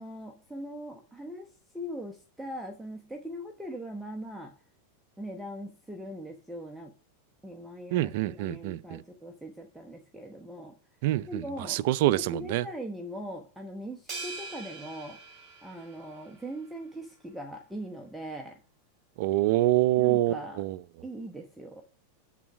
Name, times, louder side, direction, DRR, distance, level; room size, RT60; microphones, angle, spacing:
voice 1, 0.0-4.5 5.2-6.9 7.4-10.7 11.3-11.8 12.1-15.2 15.6-18.6 20.0-20.6 21.0-21.8, equal, 5° right, 1.0 m, -40 dB
voice 2, 7.9-9.0 11.0-12.7 19.2-20.8, right 15 dB, 60° right, 0.4 m, -26 dB
sound 1, 14.1-16.6, right 3 dB, 30° right, 4.7 m, -42 dB
8.2 x 4.0 x 5.9 m
hypercardioid pair, 110°, 0 cm